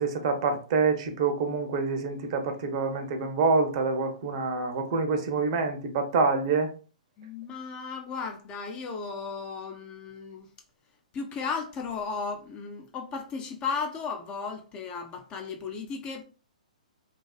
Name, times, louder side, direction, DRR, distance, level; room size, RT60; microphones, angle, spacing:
voice 1, 0.0-6.7, right 4 dB, 45° right, 0.6 m, -26 dB
voice 2, 7.2-10.5 11.1-16.2, left 5 dB, 25° left, 0.4 m, -35 dB
2.3 x 2.3 x 2.3 m
hypercardioid pair, 130°, 4 cm